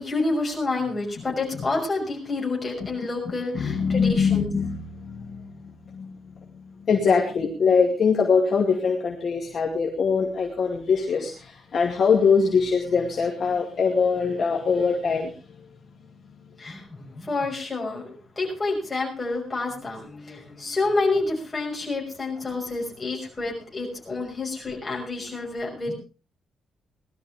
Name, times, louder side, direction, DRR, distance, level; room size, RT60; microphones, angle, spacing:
voice 1, 0.0-4.5 16.6-25.9, left 3 dB, 15° left, -3 dB, 5.9 m, -28 dB
voice 2, 3.5-6.2 6.5-15.3, left 5 dB, 45° left, -1 dB, 2.3 m, -23 dB
19.5 x 12.5 x 3.6 m, 0.33 s
cardioid pair, 170°, 0 cm